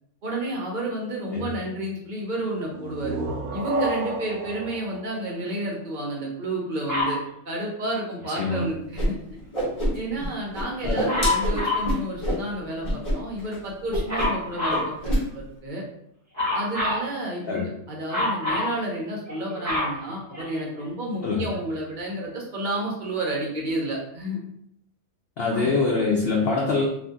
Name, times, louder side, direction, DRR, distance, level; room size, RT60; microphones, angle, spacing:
voice 1, 0.2-3.2 3.5-7.2 7.4-9.2 9.9-15.8 16.5-24.4 25.5-25.7 26.1-26.2, right 1 dB, 45° right, -2 dB, 0.6 m, -31 dB
sound 1, 2.7-6.3, right 2 dB, 75° right, 1.0 m, -32 dB
Dog, 6.9-7.2 11.1-11.9 14.1-14.9 16.3-17.1 18.1-18.7 19.3-20.8 21.5-21.6, left 2 dB, 10° right, 0.9 m, -26 dB
Whoosh swoosh swish, 9.0-9.1 9.3-10.3 10.5-12.4 12.8-13.1 13.4-13.6 13.9-14.4 14.7-15.2, equal, 30° left, 0.9 m, -25 dB
voice 2, 25.4-26.8, left 4 dB, 65° left, -2 dB, 0.6 m, -24 dB
2.7 x 2.5 x 3.5 m, 0.75 s
omnidirectional pair, 1.5 m